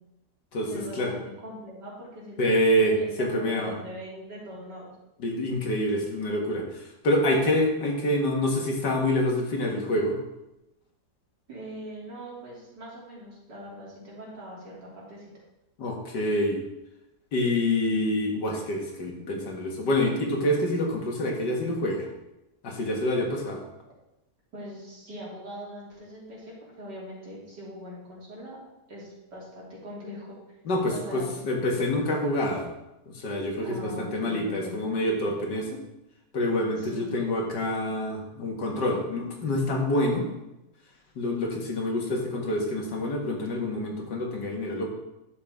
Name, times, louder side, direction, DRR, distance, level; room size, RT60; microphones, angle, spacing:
voice 1, 0.7-2.4 3.0-4.9 11.5-15.3 24.5-28.6 28.9-30.6 30.9-31.4 33.6-34.8 36.8-37.1, equal, 75° right, -6 dB, 3.6 m, -41 dB
voice 2, 2.4-3.7 5.2-10.2 15.8-16.6 17.3-22.1 22.6-23.6 30.7-32.7 33.1-35.7 36.3-40.3 41.2-44.9, left 1 dB, 75° left, 0 dB, 2.3 m, -26 dB
10.5 x 7.4 x 3.6 m, 0.92 s
omnidirectional pair, 1.8 m